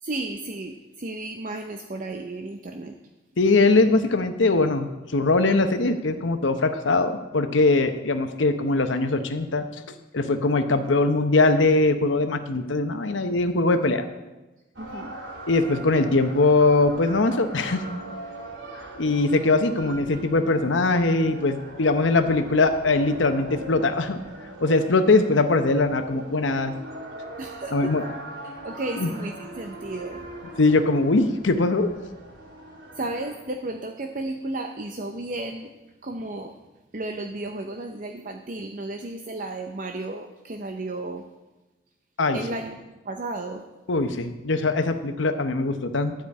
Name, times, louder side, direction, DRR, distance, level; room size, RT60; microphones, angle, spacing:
voice 1, 0.0-3.0 14.8-15.1 27.4-28.0 28.6-30.3 33.0-35.7 36.0-36.5 36.9-41.2 42.3-42.8 43.0-43.6, right 2 dB, 45° right, 4 dB, 0.6 m, -33 dB
voice 2, 3.4-9.6 10.1-14.0 15.5-17.8 19.0-24.2 24.6-26.7 27.7-28.0 29.0-29.1 30.6-31.9 42.2-42.4 43.9-46.1, left 3 dB, 85° left, 8 dB, 0.9 m, -21 dB
sound 1, 14.7-33.3, right 1 dB, 80° right, 3.5 m, -40 dB
12.0 x 5.1 x 8.4 m, 1.1 s
head